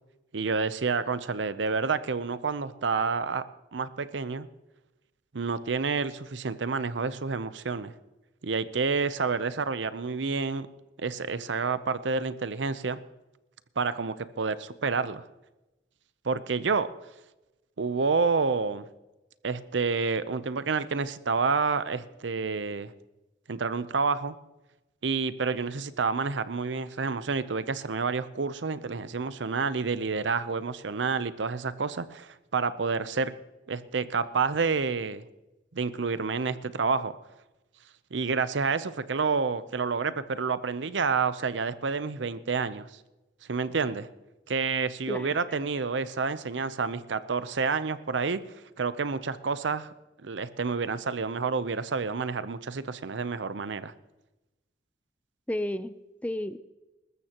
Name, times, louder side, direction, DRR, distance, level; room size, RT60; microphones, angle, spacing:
voice 1, 0.3-3.4 3.7-4.5 5.3-7.9 8.4-10.7 11.0-13.0 13.8-15.2 16.2-16.9 17.8-18.8 19.4-22.9 23.5-24.4 25.0-33.3 33.7-35.2 35.7-37.1 38.1-42.9 43.5-44.1 44.5-48.4 48.8-49.9 50.2-53.9, right 4 dB, 90° right, 14 dB, 0.7 m, -29 dB
voice 2, 45.1-45.4 55.5-56.6, left 1 dB, 10° left, 13 dB, 0.4 m, -32 dB
20.5 x 14.0 x 3.0 m, 1.0 s
head